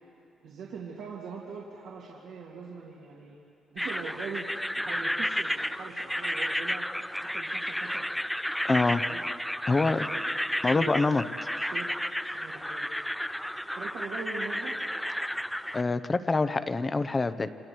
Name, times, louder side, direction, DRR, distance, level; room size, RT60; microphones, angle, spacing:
voice 1, 0.4-3.4 3.7-4.5 4.8-6.9 7.3-8.1 8.9-9.2 9.8-11.0 11.5-12.9 13.8-14.8, right 5 dB, 80° right, -4 dB, 2.5 m, -42 dB
sound 1, 3.8-15.8, equal, 5° left, 0.4 m, -32 dB
voice 2, 8.7-9.0 9.7-10.1 10.6-11.2 15.7-17.5, left 3 dB, 25° left, 12 dB, 0.9 m, -25 dB
28.5 x 26.5 x 4.7 m, 2.8 s
cardioid pair, 90°, 0 cm